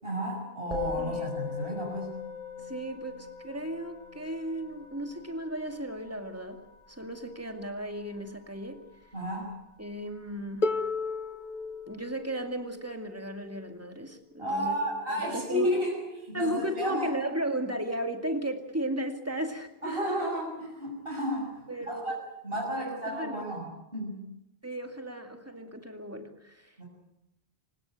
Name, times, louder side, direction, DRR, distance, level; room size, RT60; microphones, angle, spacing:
voice 1, 0.0-2.1 9.1-9.5 14.4-17.1 19.8-22.1 22.4-24.2 26.8-26.9, equal, 65° right, -1 dB, 6.3 m, -32 dB
Musical instrument, 0.7-10.2, left 6 dB, 35° right, 6.7 m, -41 dB
voice 2, 2.6-8.8 9.8-10.7 11.9-14.8 15.1-15.7 16.3-20.3 21.7-22.2 22.8-23.4 24.6-26.8, right 1 dB, 15° right, 6 dB, 2.4 m, -35 dB
Harp, 10.6-16.4 17.5-17.6, left 3 dB, 50° left, 1.2 m, -36 dB
26.5 x 17.5 x 9.0 m, 0.89 s
omnidirectional pair, 1.1 m